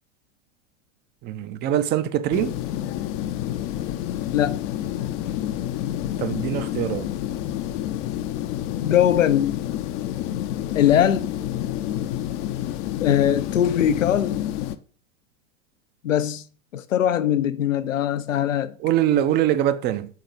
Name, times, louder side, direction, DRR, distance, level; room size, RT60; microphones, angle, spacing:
voice 1, 1.2-2.5 6.2-7.1 18.8-20.1, right 11 dB, 30° right, 0.5 m, -23 dB
sound 1, 2.3-14.8, left 12 dB, 35° left, 0.5 m, -29 dB
voice 2, 8.8-9.6 10.7-11.3 13.0-14.4 16.0-16.4 16.7-18.8, left 10 dB, 85° left, 0.6 m, -21 dB
4.7 x 3.9 x 5.1 m
hypercardioid pair, 95°, 38 cm